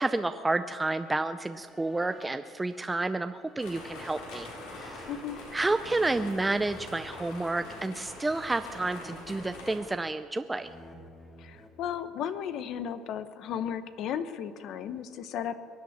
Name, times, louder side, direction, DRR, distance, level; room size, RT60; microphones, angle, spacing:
voice 1, 0.0-5.1 5.5-10.7, right 2 dB, 10° right, 10 dB, 0.4 m, -30 dB
sound 1, 1.7-6.9 7.6-8.1 8.7-10.2 10.5-12.5, left 1 dB, 20° left, 2.2 m, -53 dB
sound 2, 3.6-9.8, left 2 dB, 85° left, 4.5 m, -44 dB
voice 2, 5.1-5.4 11.4-15.6, left 9 dB, 60° left, 12 dB, 0.8 m, -35 dB
22.5 x 8.6 x 7.2 m, 2.2 s
cardioid pair, 125°, 0 cm